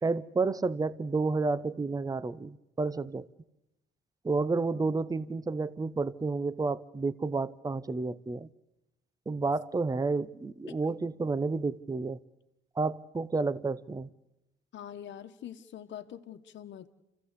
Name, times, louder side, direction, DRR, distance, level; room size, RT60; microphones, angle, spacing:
voice 1, 0.0-3.3 4.2-8.5 9.3-12.2 12.8-14.1, right 3 dB, 20° right, 18 dB, 0.8 m, -30 dB
voice 2, 14.7-16.9, left 10 dB, 70° left, 6 dB, 1.3 m, -45 dB
27.5 x 15.0 x 8.4 m, 0.92 s
cardioid pair, 90°, 20 cm